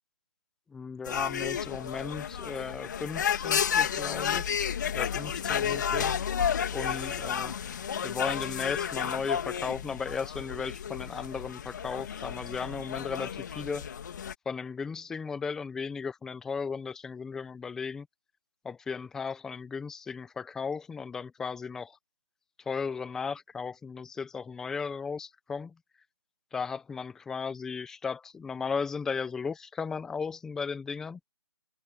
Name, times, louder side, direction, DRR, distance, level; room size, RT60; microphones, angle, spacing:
voice 1, 0.7-4.6 4.9-6.2 6.7-7.6 8.0-13.9 14.5-18.1 18.6-22.0 22.6-25.8 26.5-31.2, left 5 dB, 5° left, 0.6 m, -36 dB
sound 1, 1.0-14.3, left 8 dB, 45° left, 2.9 m, -32 dB
hypercardioid pair, 165°, 14 cm